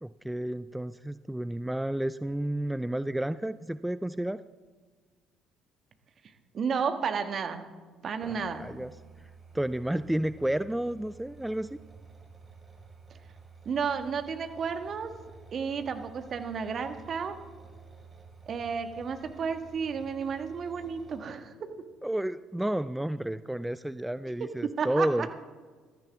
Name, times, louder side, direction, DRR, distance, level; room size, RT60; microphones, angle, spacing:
voice 1, 0.0-4.4 8.3-9.0 9.5-11.7 22.0-25.3, right 1 dB, 5° right, 15 dB, 0.4 m, -31 dB
voice 2, 6.5-7.6 8.0-8.7 13.6-15.1 15.5-17.4 18.5-21.5 24.8-25.3, right 6 dB, 50° right, 7 dB, 1.5 m, -32 dB
sound 1, 8.2-21.2, right 4 dB, 30° right, 4.3 m, -52 dB
18.5 x 14.0 x 3.6 m, 1.5 s
hypercardioid pair, 55°, 0 cm